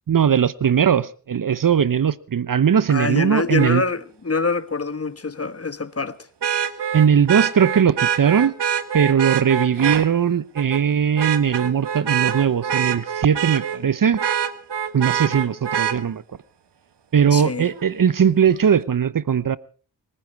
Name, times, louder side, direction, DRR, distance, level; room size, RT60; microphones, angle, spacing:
voice 1, 0.1-3.8 6.9-8.5 8.9-14.2 14.9-16.2 17.1-19.6, right 8 dB, 50° right, 0.9 m, -19 dB
voice 2, 2.9-6.2 17.3-17.7, left 4 dB, 35° left, 1.3 m, -25 dB
Vehicle horn car horn honking, 3.6-3.7 6.4-10.0 10.6-10.8 11.2-13.8 14.2-16.0 17.8-17.9, right 8 dB, 70° right, 1.8 m, -24 dB
26.0 x 10.0 x 4.7 m
supercardioid pair, 40°, 43 cm